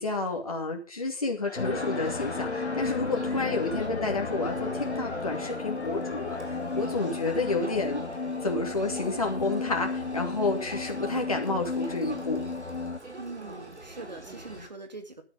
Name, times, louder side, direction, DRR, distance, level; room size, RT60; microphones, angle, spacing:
voice 1, 0.0-8.0 8.4-12.5, left 3 dB, 30° left, 1 dB, 2.6 m, -30 dB
Laughter, 1.3-8.1, left 2 dB, ahead, 2.0 m, -43 dB
sound 1, 1.6-13.0, left 4 dB, 80° left, 1.7 m, -34 dB
Crowd, 2.8-14.7, right 2 dB, 75° right, 4.3 m, -44 dB
voice 2, 13.2-15.2, right 3 dB, 40° right, 7 dB, 2.4 m, -42 dB
14.5 x 12.0 x 3.7 m, 0.33 s
figure-of-eight pair, 180°, 34 cm